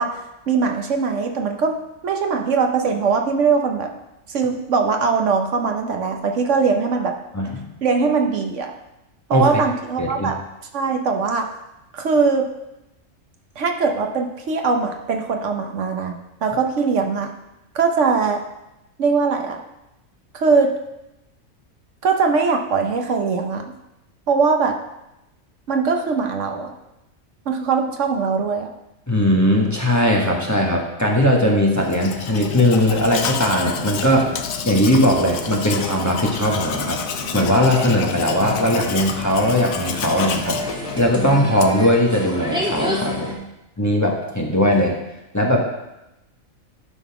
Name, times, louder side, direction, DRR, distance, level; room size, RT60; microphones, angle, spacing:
voice 1, 0.0-1.8 2.0-3.9 4.3-7.2 7.8-8.7 9.3-10.4 10.7-11.5 11.9-12.5 13.6-16.2 16.4-17.3 17.7-18.4 19.0-19.6 20.3-20.7 22.0-23.6 24.3-24.8 25.7-26.7 27.5-28.7, right 5 dB, 65° right, 4 dB, 1.1 m, -21 dB
voice 2, 9.3-9.6 10.0-10.3 29.1-34.4 34.6-37.0 37.3-40.6 41.0-43.3 43.8-45.0 45.3-45.6, equal, 15° left, -1 dB, 1.1 m, -19 dB
Domestic sounds home sounds, 31.8-41.9, left 7 dB, 85° left, 1.1 m, -29 dB
sound 1, 35.4-43.3, left 1 dB, 5° right, 1.6 m, -32 dB
11.5 x 4.0 x 5.8 m, 0.91 s
omnidirectional pair, 1.4 m